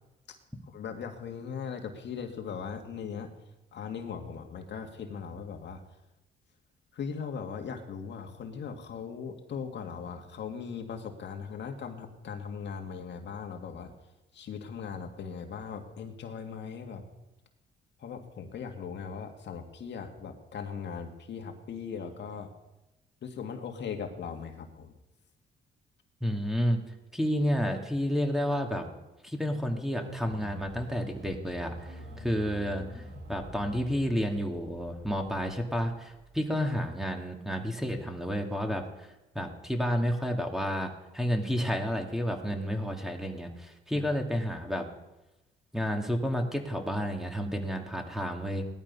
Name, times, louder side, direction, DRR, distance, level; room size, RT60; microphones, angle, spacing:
voice 1, 0.7-3.3 3.7-5.8 6.9-13.9 14.3-17.0 18.0-22.5 23.2-24.9 43.9-44.1, left 6 dB, 65° left, 4 dB, 1.9 m, -39 dB
voice 2, 26.2-26.8 27.1-28.9 29.2-33.0 33.3-39.1 39.3-44.9 45.7-48.7, equal, ahead, 2 dB, 2.3 m, -30 dB
sound 1, 29.9-36.6, right 1 dB, 65° right, 3.9 m, -46 dB
17.5 x 12.0 x 5.5 m, 0.99 s
cardioid pair, 90°, 20 cm